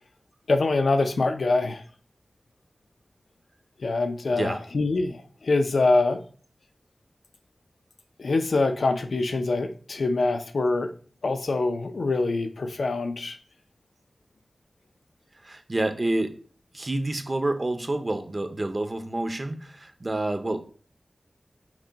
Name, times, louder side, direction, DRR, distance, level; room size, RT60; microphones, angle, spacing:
voice 1, 0.5-1.8 3.8-6.2 8.2-10.9 11.2-13.4, left 3 dB, 90° left, 7 dB, 0.5 m, -24 dB
voice 2, 15.4-16.4 16.7-20.6, right 2 dB, 35° right, 8 dB, 0.6 m, -28 dB
5.9 x 2.2 x 3.9 m, 0.43 s
wide cardioid pair, 90°, 0 cm